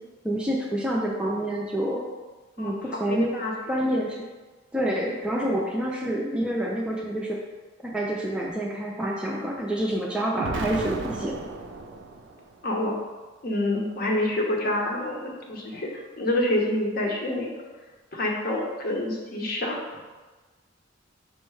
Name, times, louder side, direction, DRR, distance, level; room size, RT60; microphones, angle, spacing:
voice 1, 0.2-2.1 2.6-3.3 3.7-4.2 4.7-7.4 7.8-11.4, right 1 dB, 5° right, -3 dB, 0.4 m, -27 dB
voice 2, 3.1-3.5 12.6-12.9 13.4-17.5 18.1-19.8, left 1 dB, 50° left, 0 dB, 0.7 m, -27 dB
Explosion, 10.4-12.5, right 3 dB, 70° right, 0.4 m, -34 dB
5.4 x 2.1 x 4.6 m, 1.3 s
head